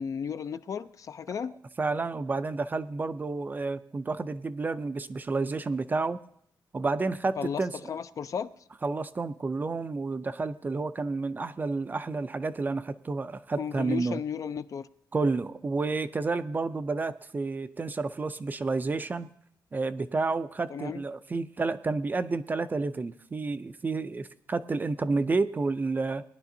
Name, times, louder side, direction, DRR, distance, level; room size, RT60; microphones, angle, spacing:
voice 1, 0.0-1.5 7.4-7.6 7.9-8.5 13.6-14.9 20.7-21.0, left 7 dB, 45° left, 0.3 m, -34 dB
voice 2, 1.8-6.2 6.7-7.7 8.8-14.2 15.1-19.3 19.7-26.2, right 3 dB, 25° right, 0.4 m, -30 dB
19.0 x 11.0 x 2.7 m
wide cardioid pair, 160°, 8 cm